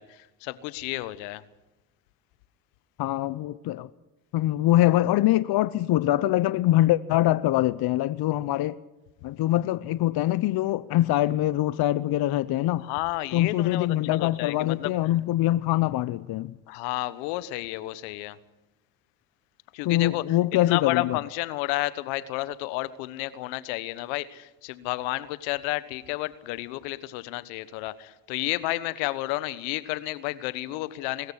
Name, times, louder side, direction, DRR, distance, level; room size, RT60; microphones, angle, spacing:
voice 1, 0.0-1.4 12.8-14.9 16.7-18.4 19.7-20.2 20.7-31.3, left 18 dB, 80° left, 1.3 m, -31 dB
voice 2, 3.0-3.9 4.3-8.8 9.2-12.8 13.3-16.5 19.8-21.2, left 14 dB, 50° left, 0.8 m, -23 dB
21.0 x 14.0 x 9.9 m
supercardioid pair, 80°, 47 cm